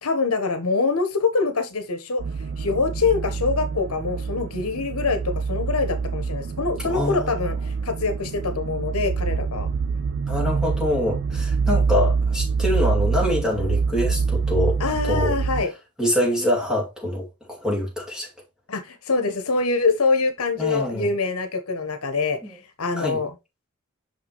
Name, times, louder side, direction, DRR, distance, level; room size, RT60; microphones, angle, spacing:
voice 1, 0.0-9.7 14.8-15.7 18.7-23.3, left 4 dB, 75° left, 1.1 m, -25 dB
sound 1, 2.2-15.6, right 5 dB, 50° right, 0.4 m, -25 dB
voice 2, 6.8-7.7 10.3-14.8 15.0-15.3 16.0-18.3 20.6-21.1 22.4-22.6 23.0-23.2, left 1 dB, 5° right, 2.4 m, -25 dB
6.1 x 5.7 x 3.0 m
head